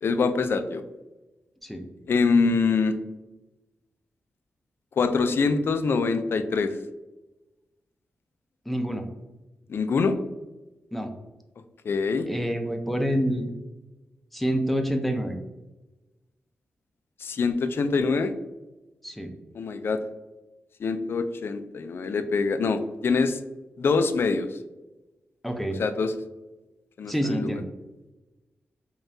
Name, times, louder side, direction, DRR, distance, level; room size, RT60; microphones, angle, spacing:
voice 1, 0.0-0.8 2.1-2.9 5.0-6.8 9.7-10.2 11.8-12.3 17.2-18.3 19.5-20.0 20.8-23.4 23.8-24.5 25.7-26.1 27.0-27.5, left 4 dB, 65° left, 10 dB, 0.3 m, -24 dB
voice 2, 8.7-9.1 10.9-11.1 12.3-13.5 14.3-15.4 19.0-19.3 25.4-25.8 27.0-27.6, equal, ahead, 4 dB, 0.5 m, -27 dB
5.3 x 2.3 x 2.6 m, 1.1 s
cardioid pair, 85°, 4 cm